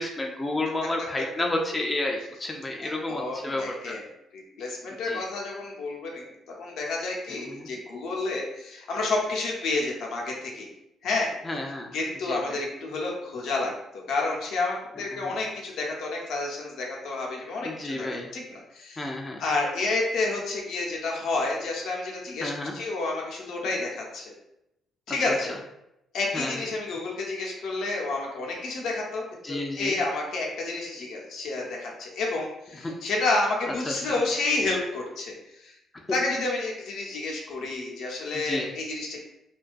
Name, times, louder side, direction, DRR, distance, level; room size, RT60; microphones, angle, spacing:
voice 1, 0.0-3.9 5.0-5.2 7.5-7.7 11.4-11.9 12.2-12.5 15.0-15.4 17.6-18.3 19.0-19.4 22.4-22.7 25.1-25.3 26.3-26.6 29.4-30.0 32.8-32.9 33.9-34.0 38.3-38.7, left 2 dB, 20° left, 1 dB, 0.3 m, -31 dB
voice 2, 2.8-4.0 4.3-10.7 11.0-11.3 11.9-18.1 18.3-19.1 19.4-24.2 25.1-25.5 26.1-35.7 36.1-39.2, left 3 dB, 80° left, -2 dB, 0.6 m, -30 dB
2.3 x 2.2 x 2.4 m, 0.86 s
cardioid pair, 90°, 0 cm